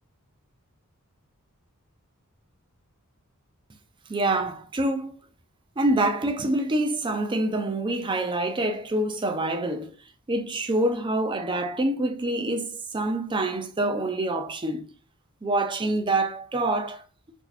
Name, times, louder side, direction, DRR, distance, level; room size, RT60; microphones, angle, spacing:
voice 1, 4.1-5.1 5.8-9.9 10.3-14.9 15.4-17.0, right 2 dB, 20° right, 0.4 m, -26 dB
4.0 x 2.8 x 2.4 m
head